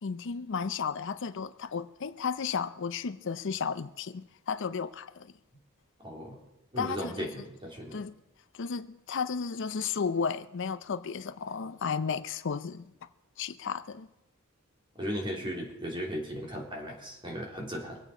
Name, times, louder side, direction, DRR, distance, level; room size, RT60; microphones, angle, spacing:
voice 1, 0.0-5.3 6.8-7.3 7.9-8.1 8.5-12.9 13.4-14.1, left 6 dB, 60° left, 0.5 m, -33 dB
voice 2, 6.0-6.4 6.7-8.0 14.9-18.0, equal, 25° right, 3.4 m, -36 dB
24.5 x 8.3 x 4.9 m
head